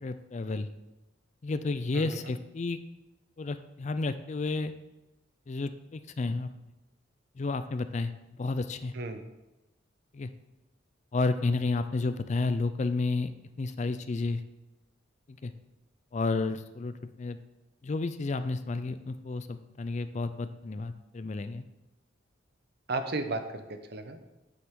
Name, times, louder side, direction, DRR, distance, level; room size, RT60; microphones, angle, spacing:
voice 1, 0.0-0.7 1.4-2.8 3.4-4.7 5.5-6.5 7.4-8.1 8.4-8.9 10.1-10.3 11.1-13.3 13.6-14.4 15.3-15.5 16.1-17.4 17.8-21.6, left 3 dB, 35° left, 11 dB, 0.4 m, -31 dB
voice 2, 22.9-24.3, right 2 dB, 55° right, 8 dB, 0.8 m, -34 dB
8.5 x 7.8 x 3.7 m, 1.0 s
head